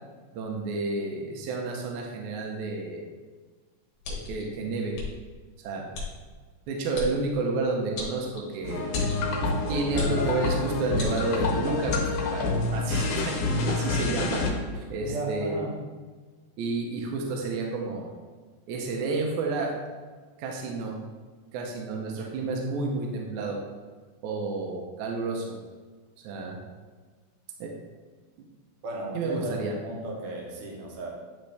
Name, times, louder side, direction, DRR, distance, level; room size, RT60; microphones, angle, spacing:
voice 1, 0.3-3.1 4.1-5.0 5.6-5.9 6.7-8.9 9.7-12.0 12.3-12.5 12.7-14.4 14.7-15.6 16.6-18.1 18.7-19.7 20.4-21.0 21.5-23.6 24.2-25.6 26.2-26.6 27.6-27.7 29.1-29.7, right 3 dB, 75° right, 0 dB, 2.1 m, -30 dB
sound 1, 4.0-4.4 4.9-5.1 5.9-6.1 6.9-7.1 8.0-8.6 8.9-9.2 10.0-10.2 10.9-11.4 11.9-12.1, left 4 dB, 60° left, 2.2 m, -35 dB
sound 2, 8.6-14.5, left 3 dB, 75° left, 2.3 m, -27 dB
voice 2, 15.0-15.8 28.8-31.1, right 2 dB, 60° right, -1 dB, 1.7 m, -35 dB
9.4 x 3.7 x 3.4 m, 1.4 s
omnidirectional pair, 3.5 m